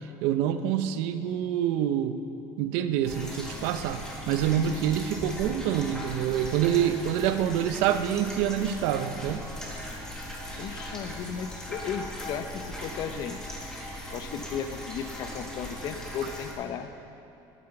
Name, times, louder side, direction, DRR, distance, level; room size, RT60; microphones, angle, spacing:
voice 1, 0.2-2.2 2.6-9.4, right 10 dB, 80° right, 9 dB, 0.8 m, -26 dB
sound 1, 3.0-16.5, equal, 5° left, 1.7 m, -39 dB
voice 2, 10.6-13.4 14.1-16.9, left 7 dB, 45° left, 9 dB, 0.7 m, -35 dB
16.5 x 9.3 x 6.6 m, 2.8 s
cardioid pair, 180°, 10 cm